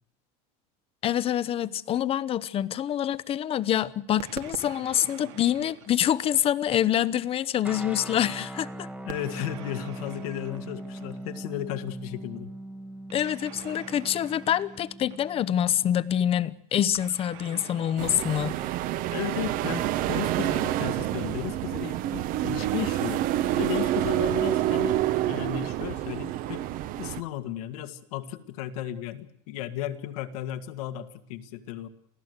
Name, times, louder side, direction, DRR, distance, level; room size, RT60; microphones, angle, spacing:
voice 1, 1.0-8.9 13.1-18.6, left 10 dB, 30° left, 0.8 m, -26 dB
sound 1, 4.2-6.8 9.1-11.4 13.1-15.6 16.9-19.4, right 11 dB, 75° right, 2.7 m, -45 dB
sound 2, 7.6-15.9, right 1 dB, 5° right, 1.2 m, -41 dB
voice 2, 9.0-12.5 19.1-23.2 23.6-26.6 27.0-31.9, left 12 dB, 85° left, 2.0 m, -35 dB
sound 3, 18.0-27.2, right 14 dB, 50° right, 1.1 m, -28 dB
28.0 x 16.0 x 8.1 m
cardioid pair, 145°, 18 cm